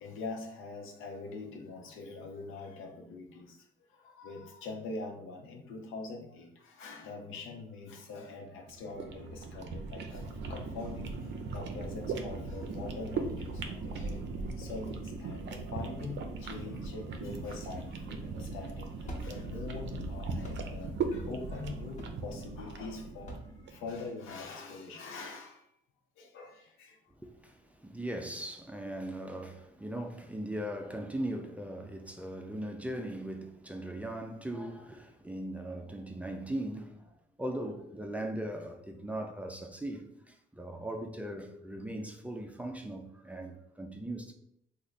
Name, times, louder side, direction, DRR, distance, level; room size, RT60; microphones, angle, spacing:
voice 1, 0.0-14.2 14.6-25.7 26.2-27.0, left 3 dB, 85° left, 0.7 m, -44 dB
sound 1, 8.6-23.9, right 4 dB, 65° right, 0.5 m, -38 dB
sound 2, 19.0-24.4, right 1 dB, 35° left, 0.9 m, -47 dB
voice 2, 27.2-37.1 37.4-44.3, right 1 dB, 5° right, 0.4 m, -39 dB
3.1 x 2.1 x 3.9 m
cardioid pair, 90°, 20 cm